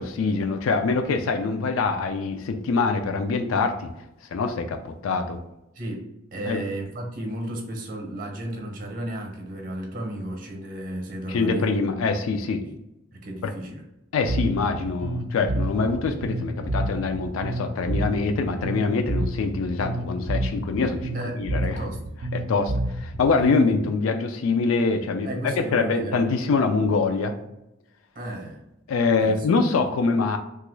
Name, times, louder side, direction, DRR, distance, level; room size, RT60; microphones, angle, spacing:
voice 1, 0.0-3.9 4.3-5.4 6.4-6.6 11.3-12.6 13.4-13.5 14.1-21.8 22.3-27.3 28.9-30.4, left 4 dB, 80° left, 6 dB, 0.3 m, -24 dB
voice 2, 5.7-11.8 12.6-12.8 13.1-13.8 21.1-22.0 25.2-26.2 28.1-28.6 29.2-29.5, right 1 dB, 40° right, 1 dB, 0.7 m, -34 dB
Bass guitar, 14.3-23.8, right 1 dB, 80° right, 0.5 m, -29 dB
2.9 x 2.4 x 3.1 m, 0.91 s
head